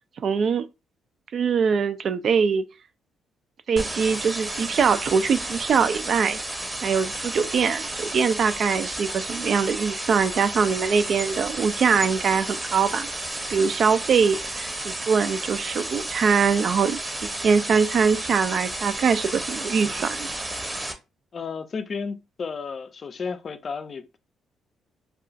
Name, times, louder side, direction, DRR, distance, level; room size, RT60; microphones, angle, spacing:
voice 1, 0.2-0.7 1.3-2.6 3.7-6.4 6.8-13.1 13.5-17.0 17.4-20.3, right 6 dB, 55° right, 0.3 m, -22 dB
sound 1, 3.8-20.9, right 1 dB, 15° right, 0.7 m, -32 dB
voice 2, 21.3-24.2, left 5 dB, 45° left, 0.4 m, -33 dB
2.4 x 2.3 x 3.8 m
cardioid pair, 95°, 0 cm